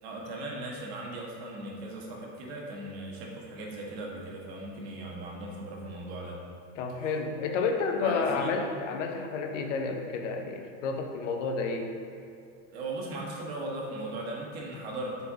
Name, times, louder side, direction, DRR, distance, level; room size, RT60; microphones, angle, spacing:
voice 1, 0.0-6.4 7.9-8.5 12.7-15.3, right 2 dB, 60° right, -2 dB, 1.3 m, -38 dB
voice 2, 6.8-12.0, left 4 dB, 80° left, 4 dB, 0.8 m, -30 dB
6.8 x 4.6 x 3.6 m, 2.4 s
supercardioid pair, 175°, 36 cm